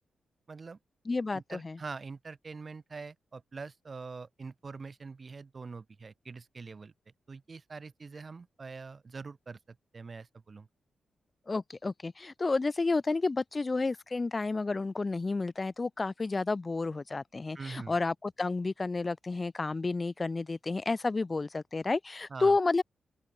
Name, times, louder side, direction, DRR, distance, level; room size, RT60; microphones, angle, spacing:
voice 1, 0.5-0.8 1.3-6.9 7.3-9.6 9.9-10.7 17.5-17.9 22.3-22.6, right 4 dB, 40° right, 3.1 m, -44 dB
voice 2, 1.0-1.8 11.5-22.8, left 3 dB, 30° left, 1.6 m, -31 dB
open air
cardioid pair, 80°, 0 cm